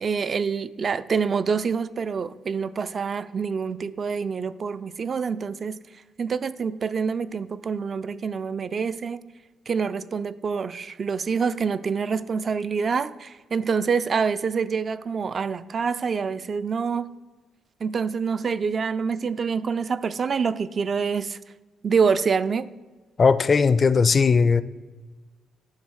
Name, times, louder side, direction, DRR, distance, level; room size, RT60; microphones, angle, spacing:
voice 1, 0.0-5.8 6.2-9.2 9.7-17.1 17.8-21.4 21.8-22.7, right 5 dB, 45° right, 0.3 m, -26 dB
voice 2, 23.2-24.6, left 5 dB, 40° left, 0.4 m, -18 dB
10.5 x 3.6 x 6.3 m
cardioid pair, 90°, 0 cm